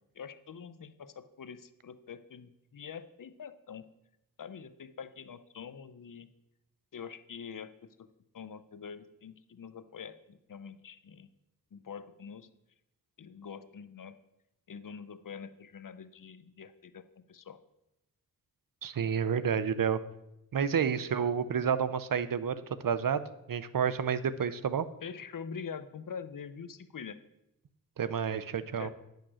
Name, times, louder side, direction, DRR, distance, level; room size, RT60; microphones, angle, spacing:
voice 1, 0.1-3.9 4.4-6.3 6.9-8.1 8.3-11.3 11.7-12.5 13.2-14.2 14.7-17.0 17.3-17.6 25.0-27.2 28.8-28.9, left 6 dB, 60° left, 12 dB, 0.7 m, -45 dB
voice 2, 18.8-20.0 20.5-23.2 23.5-24.9 28.0-28.9, right 7 dB, 65° right, 14 dB, 0.7 m, -30 dB
10.0 x 6.6 x 6.3 m, 0.88 s
cardioid pair, 55°, 36 cm